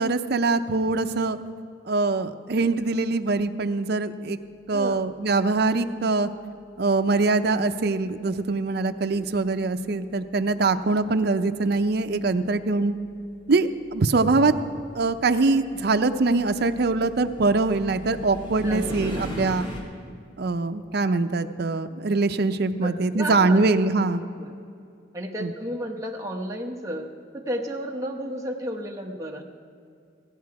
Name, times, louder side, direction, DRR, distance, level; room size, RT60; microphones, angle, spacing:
voice 1, 0.0-1.4 1.9-4.4 4.7-6.3 6.8-12.9 13.5-14.5 14.9-19.7 20.4-24.2 25.4-25.5, right 3 dB, 55° right, 9 dB, 0.5 m, -23 dB
voice 2, 4.7-5.2 9.1-9.3 14.1-14.3 18.6-19.2 22.8-23.7 24.4-24.5 25.1-27.1 27.3-29.4, equal, 15° right, 1 dB, 0.9 m, -33 dB
sound 1, 12.6-12.7 13.7-19.8, equal, 25° left, 2.3 m, -38 dB
16.5 x 10.5 x 4.7 m, 2.5 s
head